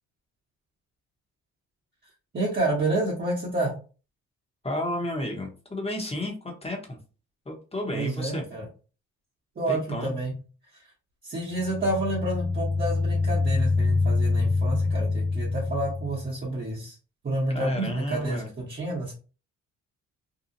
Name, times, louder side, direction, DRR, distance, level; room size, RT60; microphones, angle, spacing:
voice 1, 2.3-3.7 7.9-8.6 9.6-10.3 11.2-16.9 17.2-19.1, right 2 dB, 35° right, -6 dB, 1.1 m, -29 dB
voice 2, 4.6-7.0 7.4-8.4 9.7-10.1 17.5-18.5, left 1 dB, 20° left, 1 dB, 1.0 m, -32 dB
sound 1, 11.5-16.3, left 3 dB, 40° left, 0.9 m, -25 dB
2.8 x 2.3 x 2.6 m, 0.35 s
cardioid pair, 90°, 30 cm